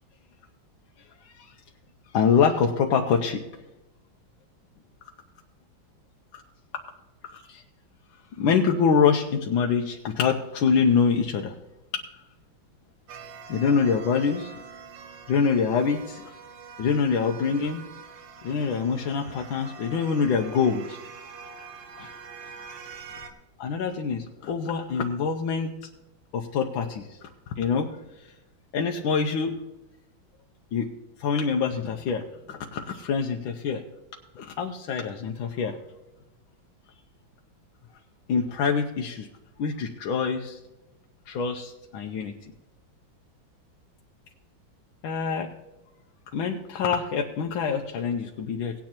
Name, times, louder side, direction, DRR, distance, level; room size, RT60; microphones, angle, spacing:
voice 1, 1.2-1.5 2.1-3.4 6.3-6.4 7.5-7.6 8.4-11.5 13.5-14.6 15.3-16.3 16.8-17.8 18.4-21.0 22.0-22.1 22.4-22.5 23.6-25.7 26.3-27.3 27.6-27.9 28.2-28.3 28.7-29.5 30.7-30.9 31.2-33.8 34.3-35.8 38.3-39.3 39.6-40.6 41.3-42.5 45.0-45.5 46.3-48.7, left 6 dB, 85° left, 2 dB, 1.5 m, -25 dB
sound 1, 13.1-23.3, right 5 dB, 75° right, 1.8 m, -44 dB
18.0 x 9.5 x 2.9 m, 1.0 s
omnidirectional pair, 2.1 m